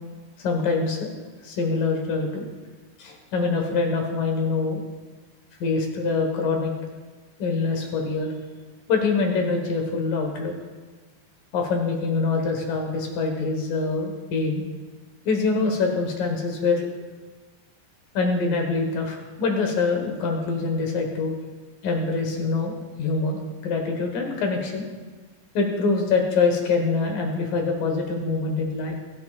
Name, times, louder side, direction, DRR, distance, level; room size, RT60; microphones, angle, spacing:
voice 1, 0.4-1.1 1.4-2.5 3.0-4.8 5.6-6.7 7.4-8.3 8.9-10.5 11.5-14.6 15.3-16.8 18.1-21.3 21.8-24.8 25.5-29.0, left 4 dB, 75° left, 3 dB, 3.1 m, -24 dB
27.0 x 9.2 x 2.5 m, 1.3 s
omnidirectional pair, 4.0 m